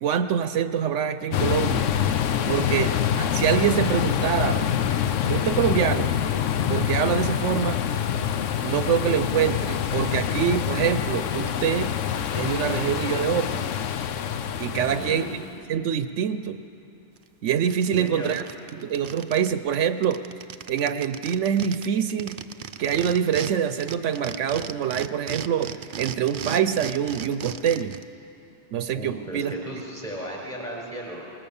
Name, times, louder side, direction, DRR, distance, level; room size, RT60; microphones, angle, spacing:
voice 1, 0.0-1.9 2.5-4.7 5.3-6.2 6.7-7.8 8.6-11.9 12.3-13.7 14.6-15.2 15.7-16.6 17.4-18.4 18.7-20.2 20.7-22.4 22.8-27.9 28.7-29.5, right 8 dB, 75° right, 11 dB, 1.0 m, -25 dB
sound 1, 1.3-15.5, left 9 dB, 80° left, 1.1 m, -26 dB
voice 2, 14.7-15.3 17.9-18.3 28.9-31.4, right 1 dB, 25° left, -3 dB, 5.4 m, -36 dB
sound 2, 17.2-17.3 17.6-19.5 19.7-19.8 20.0-23.5 23.8-28.0, right 8 dB, 55° right, 0.7 m, -36 dB
20.5 x 20.0 x 7.1 m, 2.8 s
omnidirectional pair, 1.3 m